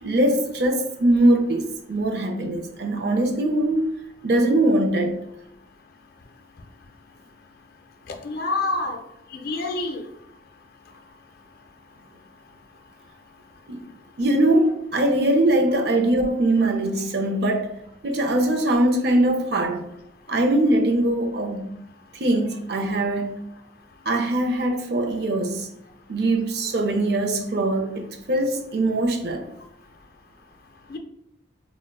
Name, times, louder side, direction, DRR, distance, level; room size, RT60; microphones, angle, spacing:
voice 1, 0.0-3.9 4.2-5.2 13.7-13.9 14.2-17.7 18.0-19.8 20.3-21.8 22.1-23.5 24.0-25.7 26.1-29.5, right 1 dB, 55° right, 0.5 m, -22 dB
voice 2, 8.1-9.0 9.3-10.1 30.9-31.0, left 2 dB, 50° left, 0.4 m, -27 dB
4.4 x 2.1 x 2.3 m
head